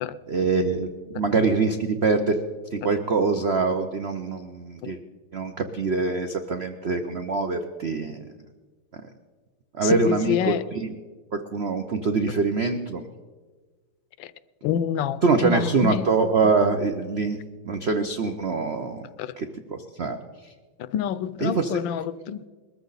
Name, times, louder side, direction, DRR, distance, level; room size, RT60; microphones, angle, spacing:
voice 1, 0.3-0.9 1.1-2.4 2.7-5.0 5.3-8.2 9.8-10.5 11.3-13.0 15.2-17.4 17.6-19.1 19.4-20.2 21.4-21.8, right 4 dB, 90° right, 0.5 m, -24 dB
voice 2, 9.8-10.7 14.2-14.3 14.6-16.1 19.2-19.4 20.8-22.5, left 9 dB, 75° left, 1.2 m, -27 dB
21.5 x 14.0 x 4.0 m
omnidirectional pair, 2.3 m